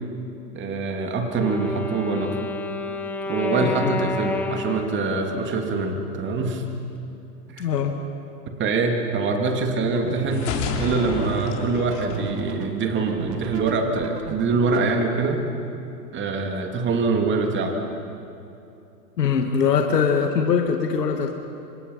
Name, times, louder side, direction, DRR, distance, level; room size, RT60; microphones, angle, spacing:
voice 1, 0.5-2.4 3.3-6.6 8.5-10.5 10.8-15.4 16.1-17.8, right 4 dB, 25° right, 4 dB, 2.9 m, -24 dB
Wind instrument woodwind instrument, 1.4-6.4, left 3 dB, 5° left, 0.5 m, -30 dB
voice 2, 3.6-4.0 7.6-7.9 19.2-21.3, left 6 dB, 75° left, 3 dB, 2.1 m, -22 dB
sound 1, 9.9-15.0, right 5 dB, 40° right, 2.3 m, -34 dB
sound 2, 10.3-13.2, left 6 dB, 40° left, 3.8 m, -31 dB
28.0 x 25.0 x 5.7 m, 2.8 s
hypercardioid pair, 120°, 49 cm